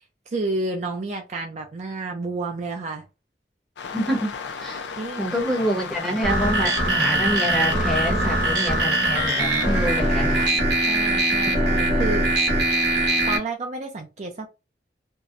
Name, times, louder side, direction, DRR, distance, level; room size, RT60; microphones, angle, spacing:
voice 1, 0.0-3.0 5.0-5.3 10.9-12.5 13.3-14.5, right 2 dB, 40° right, 0.4 m, -30 dB
sound 1, 3.8-10.5, left 5 dB, 80° left, 0.4 m, -34 dB
voice 2, 3.9-10.5, equal, ahead, 0.7 m, -27 dB
sound 2, 6.2-13.4, right 1 dB, 75° right, 0.7 m, -22 dB
2.6 x 2.0 x 2.4 m
head